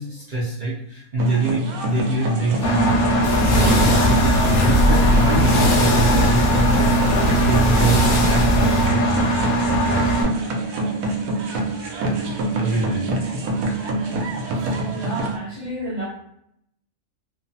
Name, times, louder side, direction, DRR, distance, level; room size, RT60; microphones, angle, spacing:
voice 1, 0.0-9.0 10.1-10.3 12.6-13.1, right 2 dB, 60° right, -6 dB, 0.5 m, -25 dB
sound 1, 1.2-15.3, right 2 dB, 85° right, 1.1 m, -26 dB
Engine, 2.6-10.2, right 1 dB, 80° left, 1.1 m, -20 dB
sound 2, 3.2-8.9, left 1 dB, 60° left, 0.5 m, -20 dB
voice 2, 14.9-16.1, right 1 dB, 30° right, -4 dB, 0.9 m, -30 dB
3.1 x 2.1 x 2.6 m, 0.74 s
omnidirectional pair, 1.5 m